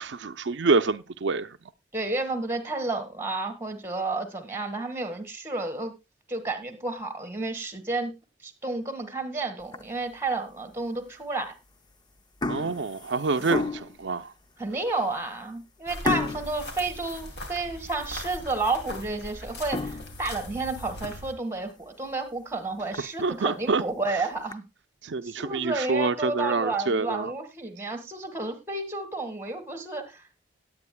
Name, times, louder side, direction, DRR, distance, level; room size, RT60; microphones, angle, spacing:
voice 1, 0.0-1.5 12.5-14.3 23.2-23.8 25.0-27.3, right 4 dB, 80° right, 0.5 m, -26 dB
voice 2, 1.9-5.9 6.3-8.1 8.4-11.5 13.4-13.7 14.6-24.6 25.2-30.2, right 2 dB, 15° right, 1.7 m, -31 dB
sound 1, 9.6-10.1 10.7-10.8 11.7-11.9 12.2-14.1 14.7-14.8 15.1-15.2 16.0-17.8 18.2-18.3 18.8-18.9 19.5-21.1 21.6-21.7 22.1-22.2 22.5-22.6 22.9-23.0 23.9-24.5, left 3 dB, 25° left, 0.6 m, -33 dB
sound 2, 15.9-21.3, left 1 dB, 65° left, 2.6 m, -40 dB
18.0 x 8.7 x 2.2 m
head